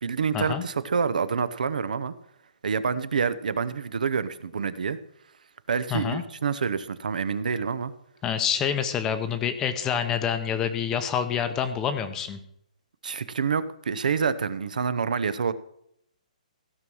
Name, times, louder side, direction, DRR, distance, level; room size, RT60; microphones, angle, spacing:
voice 1, 0.0-2.1 2.6-5.0 5.7-7.9 13.0-15.5, right 6 dB, 80° right, 14 dB, 0.9 m, -27 dB
voice 2, 5.9-6.2 8.2-12.4, left 8 dB, 10° left, 10 dB, 0.7 m, -27 dB
15.5 x 5.6 x 6.3 m, 0.72 s
hypercardioid pair, 170°, 4 cm